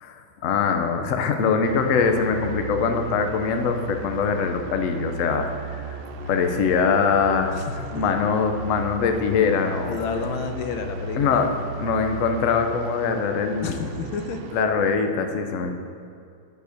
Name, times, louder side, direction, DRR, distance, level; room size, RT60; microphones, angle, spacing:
voice 1, 0.0-5.5 5.9-6.0 6.3-7.6 7.9-10.0 11.2-11.5 11.8-13.8 14.5-15.7, left 5 dB, 60° left, 5 dB, 0.8 m, -23 dB
sound 1, 1.6-14.6, right 3 dB, 75° right, 1.4 m, -35 dB
voice 2, 9.8-11.4 13.6-14.4, left 5 dB, 85° left, 6 dB, 1.5 m, -30 dB
11.0 x 5.4 x 6.4 m, 2.5 s
omnidirectional pair, 2.2 m